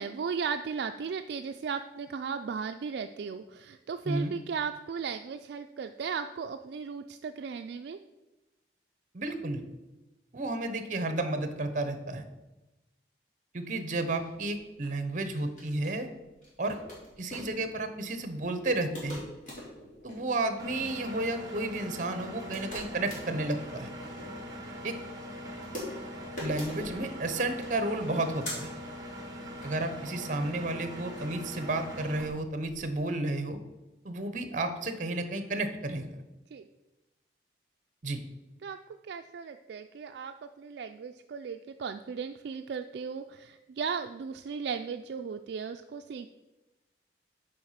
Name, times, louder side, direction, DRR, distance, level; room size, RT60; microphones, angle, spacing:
voice 1, 0.0-8.0 36.5-36.7 38.6-38.8 39.1-46.3, right 6 dB, 65° right, 7 dB, 0.3 m, -36 dB
voice 2, 9.1-9.6 10.3-12.2 13.5-16.1 16.6-16.8 17.2-19.2 20.0-23.9 24.8-25.0 26.4-28.7 29.6-33.6 34.0-36.1 38.0-38.2, right 2 dB, 45° right, 9 dB, 0.8 m, -32 dB
sound 1, 14.1-33.0, left 1 dB, 40° left, 2.9 m, -45 dB
Engine, 20.6-32.3, equal, 20° right, 1.2 m, -42 dB
7.8 x 4.9 x 5.7 m, 1.0 s
head